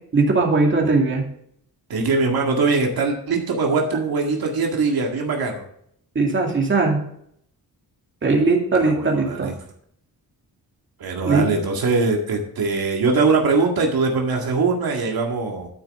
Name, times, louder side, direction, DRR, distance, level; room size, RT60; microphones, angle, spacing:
voice 1, 0.1-1.2 6.1-7.0 8.2-9.5 11.3-11.5, right 3 dB, 30° right, 0 dB, 2.4 m, -19 dB
voice 2, 1.9-5.6 8.7-9.5 11.0-15.7, right 4 dB, 75° right, 1 dB, 2.1 m, -22 dB
11.5 x 9.6 x 3.7 m, 0.67 s
wide cardioid pair, 180°, 37 cm